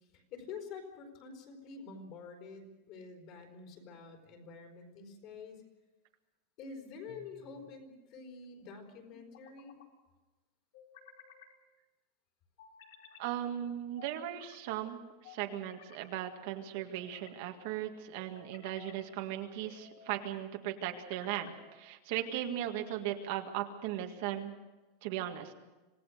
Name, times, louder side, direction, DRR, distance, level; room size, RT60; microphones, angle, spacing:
voice 1, 0.1-5.6 6.6-9.8, left 5 dB, 35° left, 4 dB, 4.5 m, -48 dB
sound 1, 7.1-7.7 9.1-9.9 10.7-11.5 12.6-13.3 14.0-14.6 15.2-16.1 16.7-17.4 18.1-19.0 19.6-20.1 20.9-21.7, left 7 dB, 70° left, 5.2 m, -56 dB
voice 2, 13.2-24.5 25.0-25.5, right 11 dB, 50° right, 4 dB, 1.8 m, -37 dB
26.5 x 18.5 x 6.5 m, 1.2 s
supercardioid pair, 180°, 0 cm